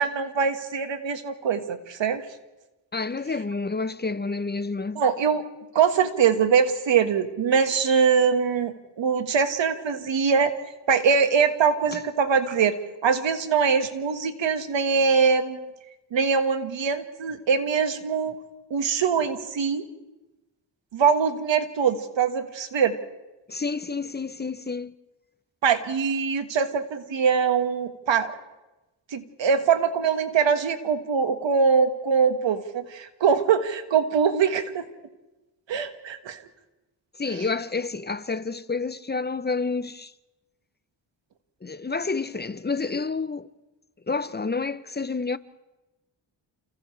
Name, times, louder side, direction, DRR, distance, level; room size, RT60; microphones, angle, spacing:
voice 1, 0.0-2.2 5.0-5.4 5.7-10.6 10.9-12.8 13.0-15.6 16.1-18.4 18.7-19.9 20.9-23.0 25.6-28.3 29.1-34.9 35.7-36.4, right 6 dB, 75° right, 1.8 m, -23 dB
voice 2, 2.9-5.0 11.9-12.0 23.5-24.9 37.2-40.1 41.6-43.5 44.1-45.4, left 4 dB, 20° left, 0.8 m, -29 dB
29.0 x 29.0 x 3.4 m
cardioid pair, 65°, 45 cm